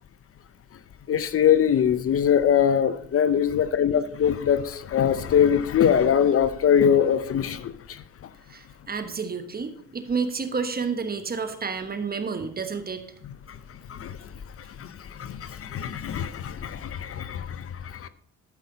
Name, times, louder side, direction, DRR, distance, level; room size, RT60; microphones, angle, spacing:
voice 1, 1.1-8.0 13.9-14.2 14.8-18.1, left 8 dB, 50° left, 14 dB, 0.6 m, -22 dB
voice 2, 8.5-13.1, right 5 dB, 30° right, 8 dB, 1.1 m, -30 dB
12.5 x 5.5 x 4.0 m, 0.62 s
cardioid pair, 90°, 30 cm